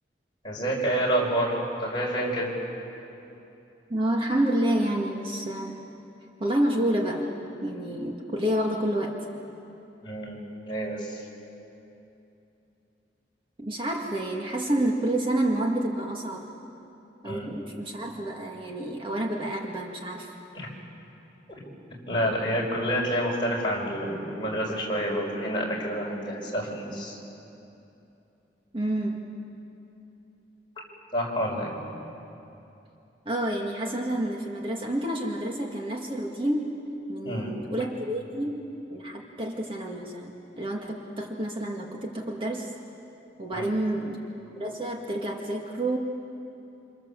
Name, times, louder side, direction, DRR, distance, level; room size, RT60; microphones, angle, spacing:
voice 1, 0.4-2.5 10.0-10.4 10.6-11.2 17.2-17.5 20.5-20.7 22.1-27.2 31.1-31.7 37.2-37.5 43.5-43.7, equal, 25° left, -3 dB, 5.6 m, -28 dB
voice 2, 3.9-5.8 6.4-7.3 7.6-9.2 13.6-16.5 17.2-20.3 28.7-29.2 33.3-36.8 37.1-42.7 43.4-44.2 44.6-46.0, right 1 dB, 30° right, 0 dB, 1.9 m, -29 dB
27.5 x 27.0 x 7.5 m, 2.9 s
head